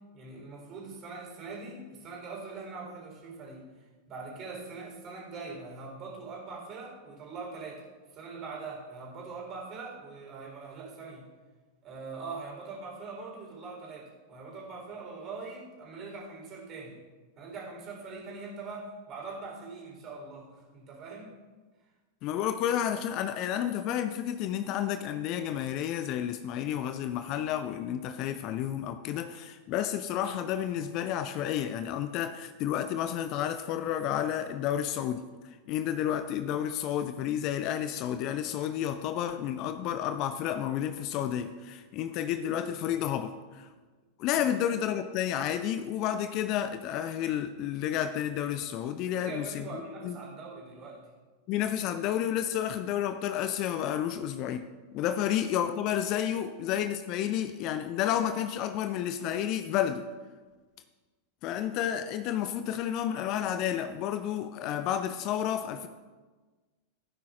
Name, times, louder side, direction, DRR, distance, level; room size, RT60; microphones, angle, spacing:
voice 1, 0.1-7.8 8.1-11.3 11.8-17.0 17.4-21.3 44.3-44.7 49.1-51.1 55.1-55.2, right 4 dB, 30° right, -1 dB, 3.8 m, -42 dB
voice 2, 22.2-43.7 44.2-50.2 51.5-54.6 54.9-60.0 61.4-65.9, left 10 dB, 40° left, 11 dB, 0.5 m, -31 dB
16.0 x 9.7 x 2.5 m, 1.3 s
figure-of-eight pair, 90°, 0 cm